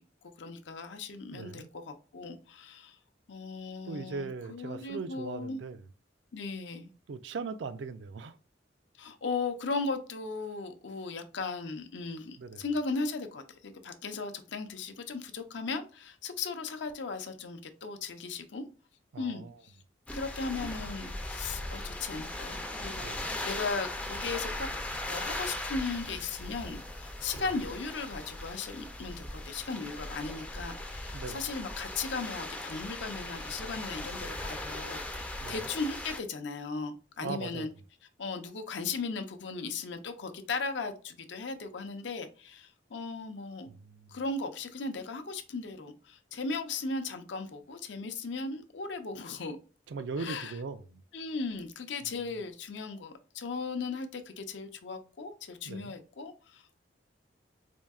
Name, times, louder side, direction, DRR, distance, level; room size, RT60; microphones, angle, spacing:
voice 1, 0.4-3.0 3.3-5.6 6.3-6.9 9.0-18.6 19.2-19.8 20.1-24.7 25.0-37.7 38.2-43.7 44.1-49.6 50.2-50.5 51.1-56.7, left 4 dB, 70° left, 0.5 m, -37 dB
voice 2, 1.3-1.7 3.9-5.8 7.1-8.4 12.4-12.6 19.1-19.6 23.0-23.3 27.3-27.5 31.1-31.4 35.4-35.7 37.2-37.7 43.7-44.2 49.9-51.0 52.0-52.3 55.7-55.9, right 4 dB, 70° right, 0.4 m, -39 dB
sound 1, 20.1-36.2, left 1 dB, 5° left, 0.4 m, -39 dB
4.4 x 2.7 x 2.3 m
head